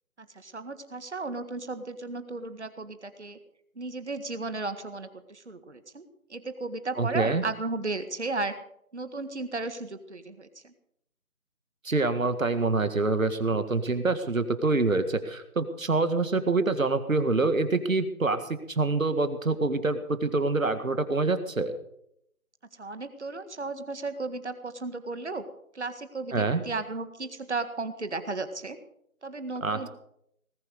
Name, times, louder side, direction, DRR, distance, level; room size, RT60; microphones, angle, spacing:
voice 1, 0.2-3.4 3.8-8.5 8.9-10.7 22.8-25.5 25.7-28.8 29.2-29.9, right 3 dB, 50° right, 10 dB, 1.8 m, -35 dB
voice 2, 7.0-7.4 11.8-18.4 18.7-21.7 26.3-26.6 29.6-29.9, right 3 dB, 65° right, 10 dB, 1.9 m, -26 dB
19.0 x 9.0 x 6.6 m, 0.72 s
figure-of-eight pair, 170°, 43 cm